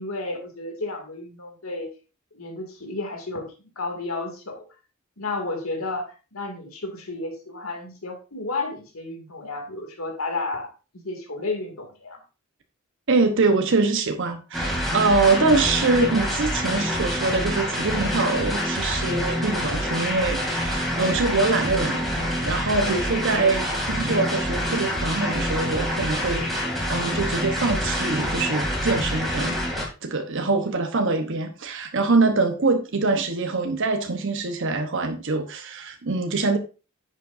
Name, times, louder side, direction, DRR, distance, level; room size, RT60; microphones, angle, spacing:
voice 1, 0.0-1.9 2.3-3.5 3.8-4.6 5.2-12.2 15.3-15.4 22.7-23.0, left 2 dB, 90° left, 3 dB, 2.4 m, -32 dB
voice 2, 13.1-26.6 26.9-29.6 30.0-36.6, right 3 dB, 65° right, 6 dB, 1.0 m, -24 dB
sound 1, 14.5-29.8, equal, ahead, 2.8 m, -26 dB
10.5 x 7.5 x 2.6 m, 0.32 s
head